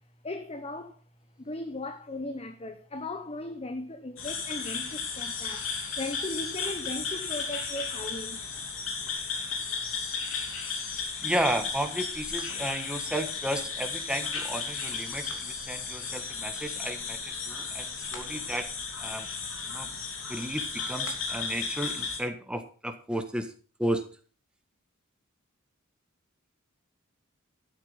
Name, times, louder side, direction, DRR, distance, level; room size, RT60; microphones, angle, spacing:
voice 1, 0.2-1.0 1.4-8.4, left 2 dB, 30° left, 1.0 m, -37 dB
sound 1, 4.2-22.2, left 5 dB, 75° left, 3.0 m, -34 dB
voice 2, 11.2-18.7 19.0-19.3 19.7-19.9 20.3-23.5 23.8-24.0, right 1 dB, 5° right, 1.5 m, -33 dB
12.0 x 8.7 x 5.7 m
head